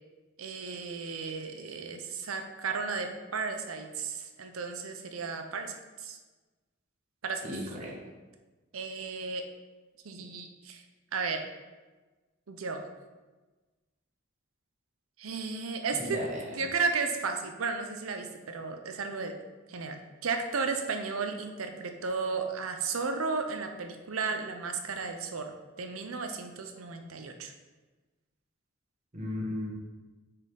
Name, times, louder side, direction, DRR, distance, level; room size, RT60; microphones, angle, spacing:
voice 1, 0.4-6.2 7.2-7.5 8.7-9.4 10.0-10.8 11.1-11.4 12.5-12.8 15.2-16.2 16.6-19.3 19.7-25.5 25.8-27.5, right 4 dB, 85° right, 5 dB, 0.7 m, -34 dB
voice 2, 7.4-7.9 15.9-16.7 29.1-29.7, left 1 dB, 35° right, -2 dB, 1.2 m, -35 dB
6.3 x 4.4 x 3.8 m, 1.2 s
head